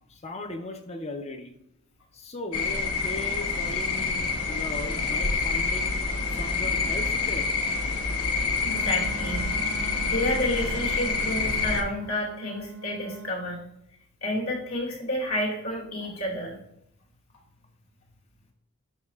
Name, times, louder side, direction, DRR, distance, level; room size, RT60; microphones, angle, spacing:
voice 1, 0.1-1.5 2.1-6.0 6.3-7.5, left 2 dB, 30° left, 5 dB, 0.7 m, -38 dB
Countryside at the night crickets, 2.5-11.8, left 4 dB, 85° left, 1.0 m, -27 dB
voice 2, 8.6-13.6 14.2-16.6, left 1 dB, 70° left, -2 dB, 2.4 m, -30 dB
Wind instrument woodwind instrument, 8.6-13.4, right 4 dB, 60° right, 0.4 m, -41 dB
12.0 x 4.1 x 2.4 m, 0.77 s
head